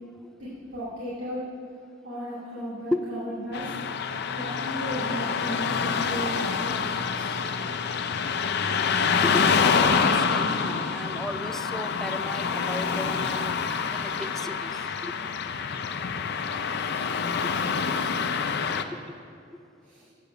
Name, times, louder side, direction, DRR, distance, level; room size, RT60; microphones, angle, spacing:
voice 1, 0.4-1.6 2.0-3.8 4.3-7.5 19.8-20.1, equal, 70° right, -10 dB, 2.4 m, -35 dB
Car passing by / Traffic noise roadway noise, 3.5-18.8, left 5 dB, 60° left, 0.5 m, -26 dB
voice 2, 9.2-13.5 13.9-14.7 15.0-15.1 19.1-19.2, left 1 dB, ahead, 9 dB, 0.3 m, -34 dB
8.1 x 7.0 x 6.6 m, 2.5 s
head